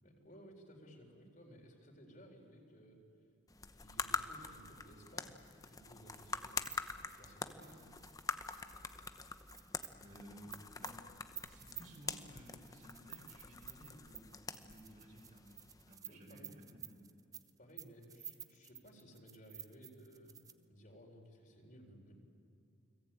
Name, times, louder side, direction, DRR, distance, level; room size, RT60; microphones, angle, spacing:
voice 1, 0.0-3.0 3.7-6.6 7.1-7.9 16.1-16.5 17.6-20.4 20.7-22.2, equal, 40° left, 1 dB, 4.2 m, -58 dB
sound 1, 3.5-16.0, left 4 dB, 15° left, 0.9 m, -45 dB
sound 2, 5.3-20.6, right 8 dB, 15° right, 0.8 m, -53 dB
voice 2, 9.9-11.0 11.5-15.5 15.8-17.0, equal, 35° right, 1 dB, 4.7 m, -56 dB
29.5 x 22.0 x 8.9 m, 2.8 s
head